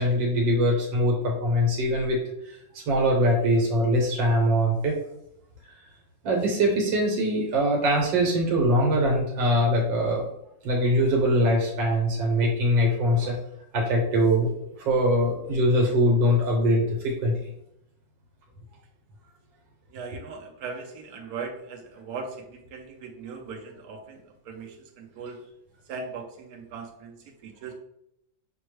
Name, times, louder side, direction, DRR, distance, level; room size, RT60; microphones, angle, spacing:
voice 1, 0.0-2.2 2.4-5.0 6.2-10.2 10.6-13.4 13.7-14.5 14.8-17.3, equal, 85° right, 0 dB, 1.6 m, -22 dB
voice 2, 19.9-25.4 25.9-27.7, right 4 dB, 65° right, 3 dB, 1.1 m, -39 dB
6.1 x 2.2 x 3.1 m, 0.78 s
omnidirectional pair, 1.9 m